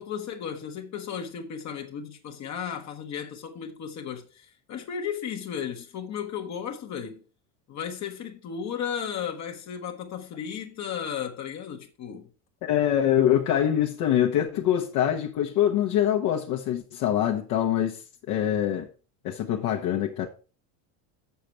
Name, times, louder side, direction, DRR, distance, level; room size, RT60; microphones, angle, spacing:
voice 1, 0.0-7.2 7.7-12.3, left 8 dB, 40° left, 1.2 m, -35 dB
voice 2, 12.6-18.0 18.3-18.9 19.2-20.3, left 10 dB, 60° left, 1.2 m, -24 dB
6.9 x 6.6 x 4.5 m
supercardioid pair, 120°, 42 cm